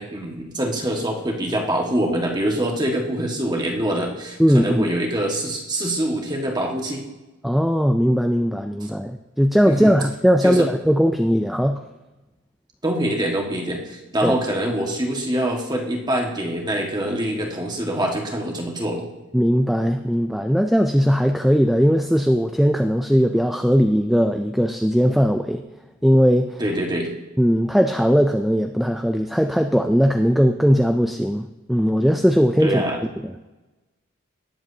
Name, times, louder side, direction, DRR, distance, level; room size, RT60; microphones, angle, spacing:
voice 1, 0.0-7.0 9.7-9.9 10.4-10.7 12.8-19.0 26.6-27.1 32.6-33.0, right 1 dB, 20° right, 1 dB, 1.6 m, -24 dB
voice 2, 4.4-4.9 7.4-11.8 14.2-14.3 19.3-25.6 26.0-26.6 27.4-32.8 33.2-33.5, equal, ahead, 6 dB, 0.3 m, -19 dB
18.5 x 7.6 x 2.8 m, 1.1 s
head